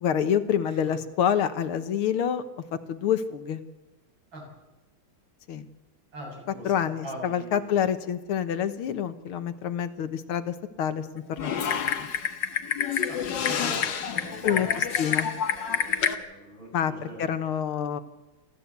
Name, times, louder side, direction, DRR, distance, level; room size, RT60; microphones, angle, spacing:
voice 1, 0.0-2.4 2.9-3.6 5.5-5.7 6.6-12.1 14.4-15.3 16.7-16.9 17.2-18.0, left 9 dB, 80° left, 10 dB, 2.0 m, -27 dB
voice 2, 6.1-6.7 7.0-7.7 13.1-17.2, right 1 dB, 65° right, -1 dB, 7.5 m, -41 dB
Typing, 11.4-16.1, left 8 dB, 60° left, 1.9 m, -27 dB
29.0 x 13.0 x 8.2 m, 1.1 s
omnidirectional pair, 2.3 m